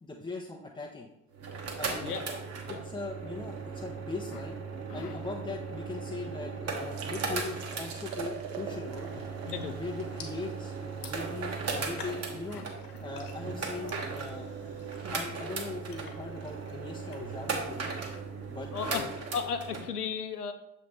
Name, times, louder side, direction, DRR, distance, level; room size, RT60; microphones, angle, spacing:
voice 1, 0.0-1.1 1.8-2.1 2.7-4.6 4.9-9.1 9.8-10.7 11.1-12.6 13.0-14.8 15.1-17.9 18.5-19.1, left 3 dB, 10° left, -3 dB, 0.7 m, -40 dB
sound 1, 1.3-19.8, right 4 dB, 35° right, 1.3 m, -37 dB
sound 2, 7.0-12.5, right 6 dB, 65° right, 1.2 m, -45 dB
sound 3, 8.9-17.5, left 5 dB, 50° left, 1.3 m, -52 dB
voice 2, 9.5-9.8 12.5-12.6 18.7-19.0 19.3-20.5, left 6 dB, 90° left, 8 dB, 0.6 m, -34 dB
7.0 x 3.3 x 4.4 m, 0.81 s
figure-of-eight pair, 60°, 45 cm